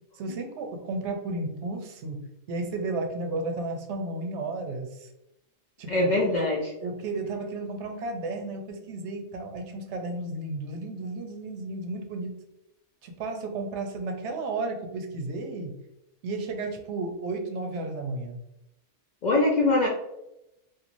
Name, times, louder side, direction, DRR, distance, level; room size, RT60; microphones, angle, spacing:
voice 1, 0.1-5.1 5.8-6.1 6.8-12.3 13.0-15.8 16.2-18.4, right 2 dB, 75° right, 4 dB, 0.9 m, -33 dB
voice 2, 5.9-6.7 19.2-19.9, left 2 dB, 60° left, -2 dB, 0.4 m, -23 dB
3.0 x 2.5 x 2.5 m, 0.87 s
omnidirectional pair, 1.2 m